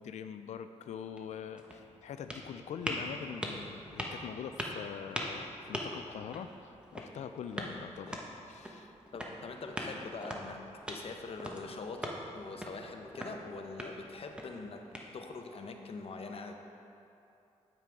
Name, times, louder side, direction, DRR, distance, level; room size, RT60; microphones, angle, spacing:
voice 1, 0.0-8.9, left 8 dB, 70° left, 9 dB, 0.4 m, -44 dB
sound 1, 1.0-15.5, equal, 10° right, 1.0 m, -43 dB
voice 2, 9.1-10.6 10.9-14.8 15.1-16.5, left 3 dB, 50° left, 4 dB, 0.8 m, -43 dB
9.0 x 5.7 x 4.8 m, 2.8 s
cardioid pair, 85°, 12 cm